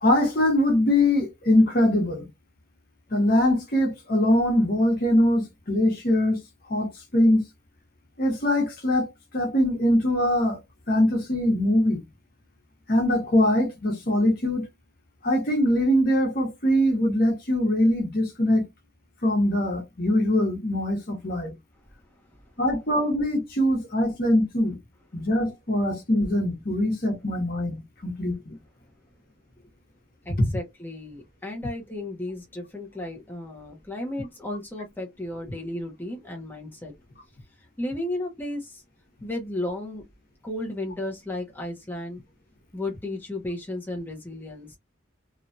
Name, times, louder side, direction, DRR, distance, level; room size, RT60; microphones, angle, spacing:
voice 1, 0.0-2.3 3.1-6.4 6.7-7.4 8.2-10.6 10.9-12.0 12.9-14.7 15.2-18.6 19.2-21.5 22.6-24.8 25.1-28.6, left 1 dB, 50° left, 1.1 m, -22 dB
voice 2, 30.2-36.9 37.8-38.8 39.2-40.0 40.4-42.2 42.7-44.8, left 1 dB, 10° left, 0.8 m, -34 dB
3.0 x 2.4 x 2.6 m
head